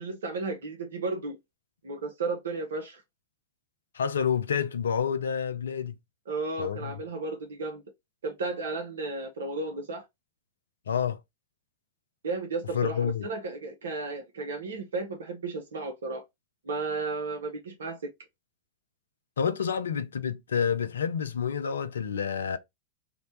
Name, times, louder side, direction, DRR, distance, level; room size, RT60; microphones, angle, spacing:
voice 1, 0.0-1.4 1.8-3.0 6.3-7.8 8.2-10.0 12.2-16.2 16.6-18.0, right 3 dB, 65° right, 0.6 m, -33 dB
voice 2, 3.9-6.0 6.6-6.9 10.9-11.2 12.7-13.3 19.4-22.6, left 7 dB, 70° left, 0.4 m, -28 dB
2.9 x 2.1 x 3.8 m
figure-of-eight pair, 90°, 0 cm